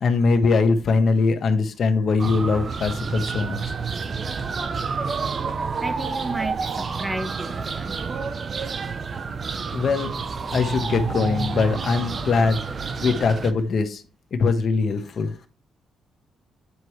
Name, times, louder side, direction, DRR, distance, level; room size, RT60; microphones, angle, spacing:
voice 1, 0.0-3.7 9.7-10.1 10.5-12.6 13.0-14.0 14.3-15.4, left 4 dB, 55° left, 1.3 m, -21 dB
sound 1, 2.2-13.5, right 5 dB, 40° right, 0.7 m, -29 dB
voice 2, 5.8-7.9, right 1 dB, 15° right, 1.1 m, -32 dB
9.6 x 4.6 x 3.2 m
cardioid pair, 90°, 0 cm